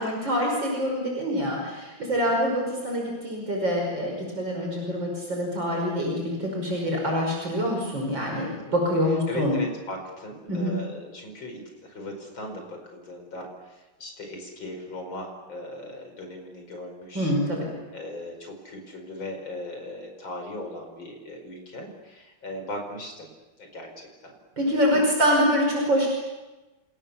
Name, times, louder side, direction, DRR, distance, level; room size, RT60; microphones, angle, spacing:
voice 1, 0.0-9.6 10.5-10.8 17.1-17.7 24.6-26.1, equal, 70° right, 0 dB, 6.1 m, -25 dB
voice 2, 9.3-17.3 17.9-23.3 23.6-24.3 24.7-25.0, left 1 dB, 80° left, 3 dB, 5.7 m, -38 dB
29.0 x 27.0 x 7.1 m, 1.1 s
omnidirectional pair, 2.1 m